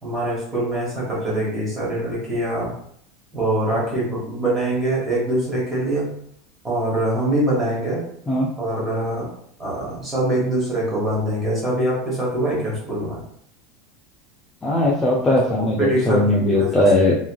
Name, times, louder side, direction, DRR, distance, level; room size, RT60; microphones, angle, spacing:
voice 1, 0.0-2.7 3.3-6.1 6.6-8.0 8.6-9.3 9.6-13.2 15.8-16.9, right 1 dB, 10° right, -6 dB, 1.2 m, -23 dB
voice 2, 14.6-17.1, left 2 dB, 10° left, -4 dB, 0.4 m, -19 dB
3.0 x 2.4 x 2.2 m, 0.66 s
supercardioid pair, 160°, 0 cm